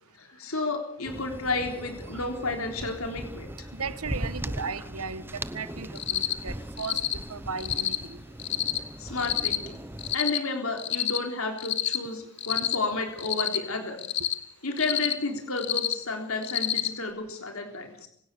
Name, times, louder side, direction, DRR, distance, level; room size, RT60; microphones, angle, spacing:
voice 1, 0.1-3.7 9.0-9.8 10.1-14.0 14.6-18.1, left 3 dB, 70° left, 4 dB, 3.7 m, -32 dB
sound 1, 1.0-10.2, right 1 dB, 10° right, 0.9 m, -39 dB
voice 2, 3.7-7.0 7.3-8.2, right 5 dB, 85° right, 14 dB, 1.4 m, -36 dB
Cricket, 5.9-6.3 6.8-7.1 7.6-8.0 8.4-8.8 9.2-9.6 10.0-10.4 10.8-11.2 11.6-12.0 12.4-12.8 13.2-13.6 14.0-14.3 14.8-15.1 15.6-15.9 16.4-16.9, left 10 dB, 50° left, 1.7 m, -27 dB
25.5 x 17.0 x 6.9 m, 0.68 s
head